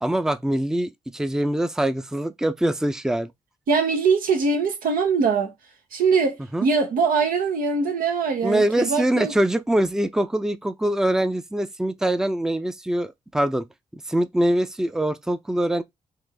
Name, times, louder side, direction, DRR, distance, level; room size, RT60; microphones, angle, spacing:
voice 1, 0.0-3.3 6.5-6.7 8.4-13.7 14.1-15.8, right 1 dB, 5° right, 0.4 m, -23 dB
voice 2, 3.7-5.5 5.9-9.3, right 5 dB, 85° right, 0.8 m, -22 dB
3.7 x 2.5 x 3.3 m
cardioid pair, 65°, 14 cm